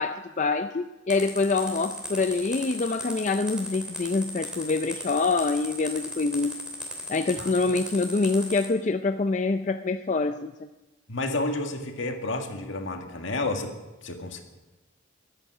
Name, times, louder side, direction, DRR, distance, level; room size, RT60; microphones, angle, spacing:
voice 1, 0.0-6.6 7.1-10.7, left 3 dB, 35° left, 8 dB, 0.4 m, -26 dB
sound 1, 1.1-8.6, equal, 5° right, 2.9 m, -36 dB
voice 2, 11.1-13.7 14.0-14.4, left 2 dB, 75° left, 3 dB, 1.9 m, -30 dB
22.5 x 9.0 x 6.1 m, 1.1 s
head